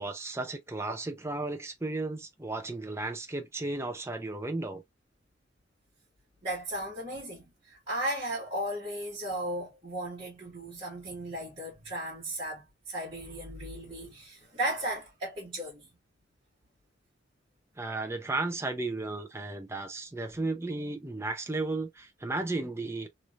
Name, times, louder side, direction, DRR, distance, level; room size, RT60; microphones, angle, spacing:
voice 1, 0.0-4.8 17.8-23.1, right 2 dB, 15° right, 0.5 m, -34 dB
voice 2, 6.4-15.9, right 1 dB, 30° right, 1.6 m, -36 dB
3.2 x 2.9 x 2.5 m
head